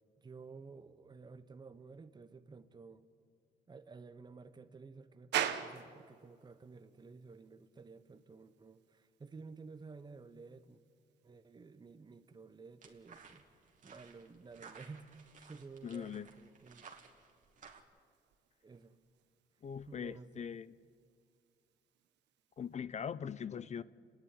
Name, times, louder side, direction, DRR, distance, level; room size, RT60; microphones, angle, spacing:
voice 1, 0.2-3.0 3.7-10.8 11.2-13.4 13.8-16.9 18.6-19.0 19.9-20.5, right 4 dB, 25° right, 10 dB, 0.9 m, -53 dB
sound 1, 5.3-22.8, right 10 dB, 85° right, 1.2 m, -47 dB
sound 2, 12.8-17.8, right 6 dB, 45° right, 2.4 m, -57 dB
voice 2, 15.8-16.3 19.6-20.8 22.6-23.8, left 7 dB, 40° left, 18 dB, 0.5 m, -41 dB
30.0 x 10.5 x 9.7 m, 2.2 s
cardioid pair, 100°, 18 cm